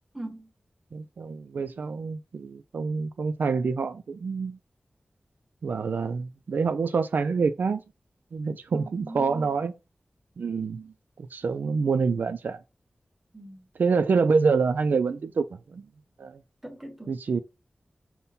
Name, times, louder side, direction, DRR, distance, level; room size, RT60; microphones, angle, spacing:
voice 1, 0.1-0.5 8.7-9.5 13.3-13.7 16.6-17.1, right 2 dB, 10° right, 1.3 m, -40 dB
voice 2, 0.9-4.6 5.6-7.8 8.3-9.7 10.4-12.6 13.8-15.8 16.2-16.4 17.1-17.4, right 5 dB, 80° right, 0.3 m, -27 dB
5.3 x 2.2 x 4.2 m
wide cardioid pair, 85°, 3 cm